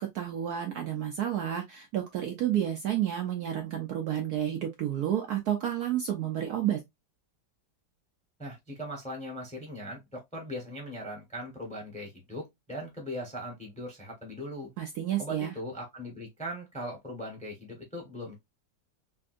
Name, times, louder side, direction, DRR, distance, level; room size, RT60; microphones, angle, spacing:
voice 1, 0.0-6.8 14.8-15.5, right 11 dB, 70° right, 1.0 m, -30 dB
voice 2, 8.4-14.7 15.2-18.4, equal, 5° left, 0.8 m, -39 dB
3.5 x 2.6 x 2.4 m
omnidirectional pair, 2.0 m